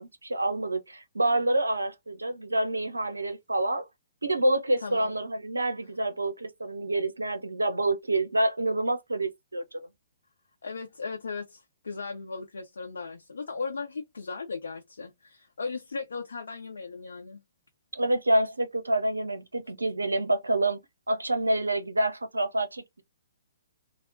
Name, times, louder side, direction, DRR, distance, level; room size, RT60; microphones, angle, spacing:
voice 1, 0.0-3.8 4.2-9.9 17.9-23.0, right 1 dB, 80° right, 0.6 m, -27 dB
voice 2, 4.8-5.1 10.6-17.4, left 4 dB, 65° left, 0.6 m, -37 dB
3.5 x 2.1 x 2.5 m
figure-of-eight pair, 120°, 0 cm